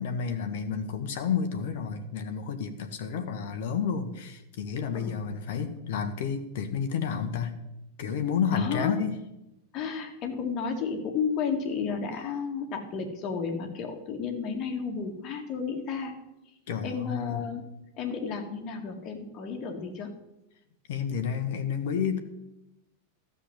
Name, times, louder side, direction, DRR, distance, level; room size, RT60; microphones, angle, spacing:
voice 1, 0.0-7.6 8.0-9.2 16.7-17.5 20.9-22.2, left 7 dB, 55° left, 6 dB, 1.3 m, -30 dB
voice 2, 8.5-8.9 9.7-16.1 16.8-17.6 18.0-20.1, left 6 dB, 35° left, 2 dB, 2.3 m, -32 dB
13.0 x 7.0 x 7.9 m, 0.91 s
figure-of-eight pair, 90°, 0 cm